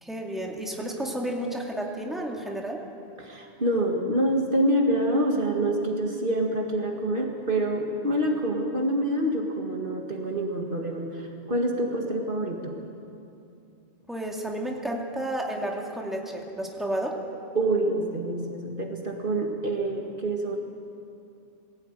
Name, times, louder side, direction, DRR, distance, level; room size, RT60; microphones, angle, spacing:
voice 1, 0.0-2.8 14.1-17.2, right 1 dB, ahead, -1 dB, 2.3 m, -31 dB
voice 2, 3.2-12.7 17.5-20.6, right 1 dB, 50° right, 1 dB, 2.1 m, -26 dB
21.5 x 16.5 x 9.1 m, 2.7 s
omnidirectional pair, 1.1 m